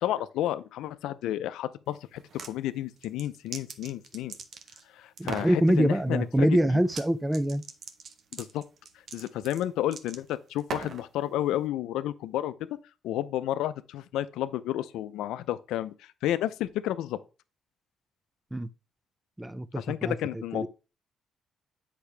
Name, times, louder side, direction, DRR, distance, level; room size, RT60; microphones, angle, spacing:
voice 1, 0.0-4.4 5.0-6.8 8.3-8.6 9.1-12.5 13.0-15.9 16.2-17.2 19.8-20.7, left 13 dB, 90° left, 0.5 m, -31 dB
sound 1, 2.1-2.5 3.0-4.8 5.2-5.6 6.8-7.1 7.3-11.1, right 5 dB, 60° right, 0.9 m, -40 dB
voice 2, 5.2-7.6 18.5-18.7 19.4-20.7, right 1 dB, 10° right, 0.5 m, -25 dB
8.3 x 5.9 x 3.3 m
cardioid pair, 90°, 0 cm